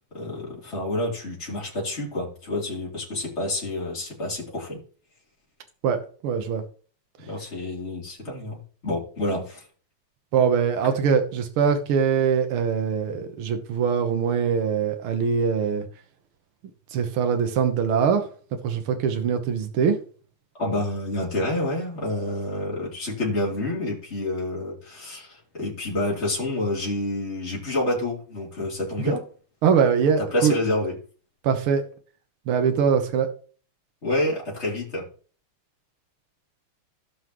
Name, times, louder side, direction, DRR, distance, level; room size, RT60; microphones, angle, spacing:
voice 1, 0.1-4.8 7.2-9.6 20.6-29.2 30.2-31.0 34.0-35.0, left 1 dB, 30° left, 3.6 m, -28 dB
voice 2, 5.8-6.6 10.3-15.9 16.9-18.2 18.6-20.0 29.6-30.5 31.4-31.8 32.5-33.3, right 6 dB, 75° right, 2.0 m, -22 dB
16.5 x 5.6 x 3.1 m
omnidirectional pair, 2.4 m